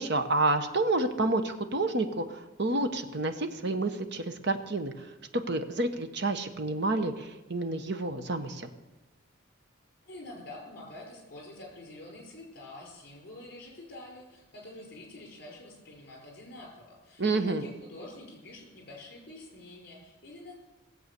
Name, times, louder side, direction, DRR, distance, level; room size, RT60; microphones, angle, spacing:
voice 1, 0.0-8.7 17.2-17.6, right 2 dB, 55° right, 7 dB, 1.1 m, -29 dB
voice 2, 10.1-20.5, left 2 dB, 50° left, 0 dB, 5.2 m, -47 dB
18.0 x 7.9 x 6.8 m, 1.1 s
head